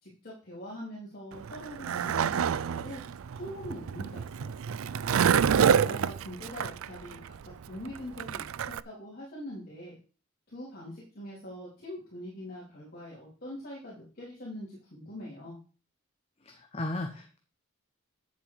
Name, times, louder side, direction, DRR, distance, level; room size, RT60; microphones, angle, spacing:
voice 1, 0.0-3.0 3.4-4.6 5.3-10.0 10.5-15.6, equal, 45° left, -6 dB, 3.4 m, -43 dB
Skateboard, 1.3-8.8, right 7 dB, 75° right, 0.4 m, -28 dB
voice 2, 16.4-17.4, left 1 dB, 30° left, 4 dB, 1.1 m, -35 dB
9.7 x 7.3 x 4.8 m, 0.37 s
head